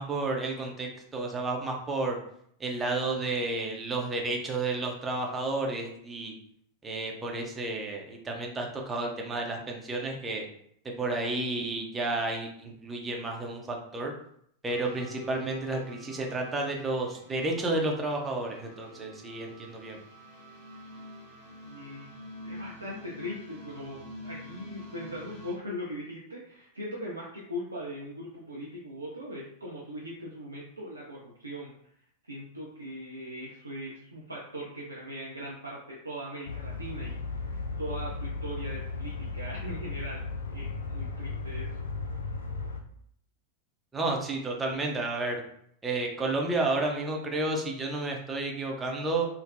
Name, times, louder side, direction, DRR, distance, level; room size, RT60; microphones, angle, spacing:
voice 1, 0.0-2.2 2.6-6.3 6.8-10.5 10.8-14.1 14.6-20.0 43.9-45.4 45.8-49.3, right 2 dB, 15° right, 1 dB, 0.6 m, -31 dB
sound 1, 14.7-25.6, left 1 dB, 45° left, 0.7 m, -47 dB
voice 2, 21.6-22.1 22.4-31.7 32.2-40.2 40.5-41.9, equal, 80° right, -4 dB, 0.5 m, -40 dB
sound 2, 36.5-42.8, left 3 dB, 70° left, 0.3 m, -35 dB
3.2 x 2.1 x 2.5 m, 0.68 s
figure-of-eight pair, 90°, 0 cm